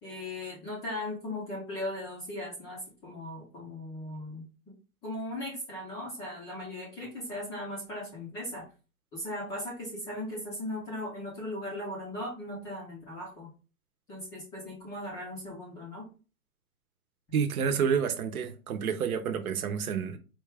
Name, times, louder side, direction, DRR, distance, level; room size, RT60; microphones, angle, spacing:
voice 1, 0.0-4.4 5.0-8.6 9.1-13.5 14.1-16.1, left 1 dB, 10° left, 0.4 m, -38 dB
voice 2, 17.3-20.2, right 7 dB, 75° right, 0.9 m, -29 dB
4.4 x 2.3 x 3.3 m
hypercardioid pair, 145°, 44 cm